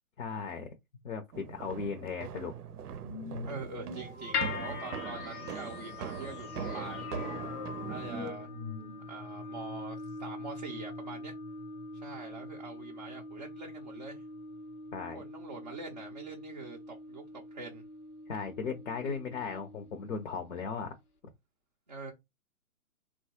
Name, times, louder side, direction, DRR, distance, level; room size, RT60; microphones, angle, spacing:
voice 1, 0.2-0.7 1.0-2.5 14.9-15.2 18.3-20.9, left 5 dB, 55° left, 0.7 m, -37 dB
sound 1, 1.3-8.3, right 7 dB, 90° right, 0.6 m, -41 dB
sound 2, 3.0-9.3, left 4 dB, 20° left, 0.6 m, -45 dB
voice 2, 3.4-7.1 7.7-8.5 9.1-11.4 11.9-14.2 15.1-17.8 21.9-22.1, right 4 dB, 30° right, 0.4 m, -44 dB
sound 3, 4.3-20.5, left 4 dB, 80° left, 0.9 m, -42 dB
3.0 x 2.2 x 2.8 m
hypercardioid pair, 145°, 44 cm